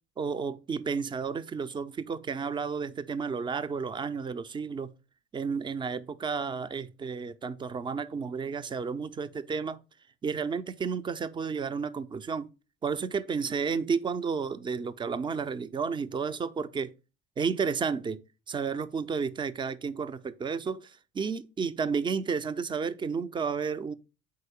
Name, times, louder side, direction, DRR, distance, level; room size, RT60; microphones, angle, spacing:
voice 1, 0.2-4.9 5.3-9.8 10.2-12.5 12.8-16.9 17.4-18.2 18.5-23.9, right 5 dB, 15° right, 0.4 m, -32 dB
4.7 x 4.0 x 5.0 m
hypercardioid pair, 60°, 34 cm